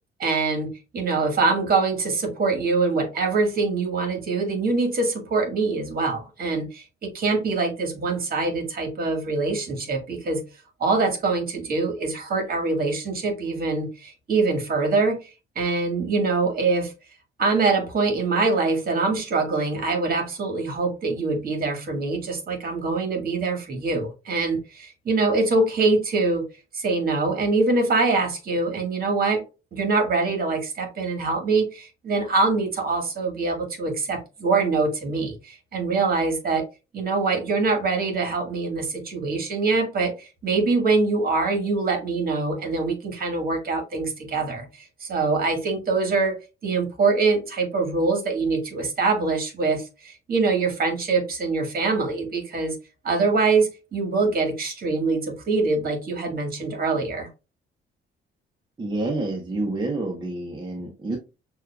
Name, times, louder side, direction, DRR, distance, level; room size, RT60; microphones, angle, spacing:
voice 1, 0.2-10.4 10.8-16.9 17.4-26.5 26.7-29.4 29.7-36.6 36.9-52.8 53.0-57.3, right 3 dB, 50° right, 4 dB, 1.6 m, -24 dB
voice 2, 58.8-61.2, right 2 dB, 20° right, 1 dB, 0.9 m, -28 dB
6.2 x 2.5 x 2.3 m, 0.29 s
cardioid pair, 90°, 20 cm